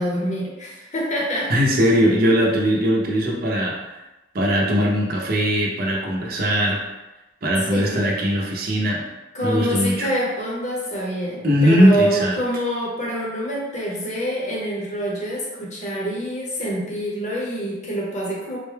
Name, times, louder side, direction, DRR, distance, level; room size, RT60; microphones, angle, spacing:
voice 1, 0.0-1.5 7.6-8.0 9.3-18.6, equal, 40° left, -3 dB, 0.9 m, -26 dB
voice 2, 1.5-3.8 4.3-6.8 7.4-9.1 9.4-10.1 11.4-12.4, equal, 50° right, -2 dB, 0.7 m, -20 dB
3.7 x 2.2 x 3.3 m, 1.0 s
head